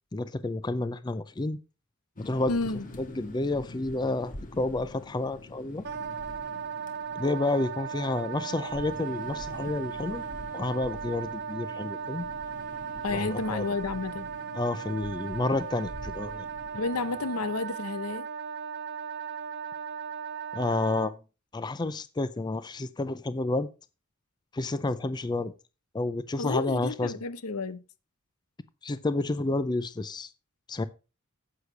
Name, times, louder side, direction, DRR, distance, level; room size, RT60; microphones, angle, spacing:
voice 1, 0.1-1.6 2.2-2.5 3.0-5.8 7.2-10.2 10.5-12.3 13.1-13.6 14.5-16.5 20.5-21.2 21.5-23.7 24.5-25.5 25.9-27.2 28.8-30.3 30.7-30.9, left 2 dB, 20° left, 0.4 m, -30 dB
sound 1, 2.2-17.5, left 1 dB, 40° left, 1.5 m, -46 dB
voice 2, 2.5-2.9 13.0-14.3 16.7-18.3 26.4-27.8, left 3 dB, 90° left, 0.8 m, -31 dB
Wind instrument woodwind instrument, 5.8-21.1, right 7 dB, 50° right, 0.6 m, -37 dB
9.9 x 8.0 x 3.3 m
head